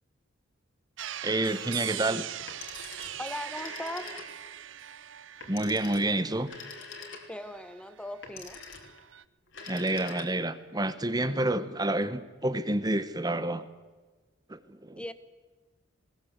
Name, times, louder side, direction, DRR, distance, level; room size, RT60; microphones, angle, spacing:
sound 1, 1.0-8.2 8.4-9.2, right 11 dB, 70° right, 0.6 m, -41 dB
voice 1, 1.2-2.2 5.5-6.5 9.6-13.7 14.5-15.0, right 1 dB, 20° right, 1.1 m, -29 dB
Telephone, 2.4-4.6 5.4-7.6 8.2-9.0 9.4-10.6, left 4 dB, 65° left, 3.2 m, -45 dB
voice 2, 3.2-4.2 7.3-8.6 15.0-15.1, left 1 dB, 5° left, 1.1 m, -38 dB
20.0 x 19.0 x 8.2 m
head